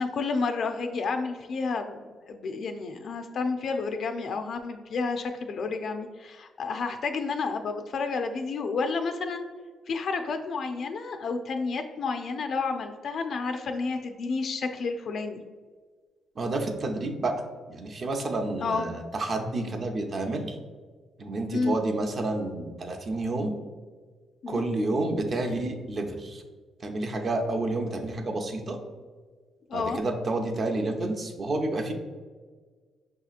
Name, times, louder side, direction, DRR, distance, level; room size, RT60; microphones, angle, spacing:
voice 1, 0.0-2.0 2.3-9.5 9.9-15.4 18.6-18.9 21.5-21.7 24.4-24.6 29.7-30.0, left 4 dB, 60° left, 6 dB, 0.3 m, -30 dB
voice 2, 16.4-17.4 17.7-20.6 21.2-23.5 24.5-26.4 26.8-28.8 29.7-31.9, right 2 dB, 45° right, 3 dB, 0.5 m, -29 dB
5.6 x 2.8 x 2.4 m, 1.5 s
cardioid pair, 90°, 0 cm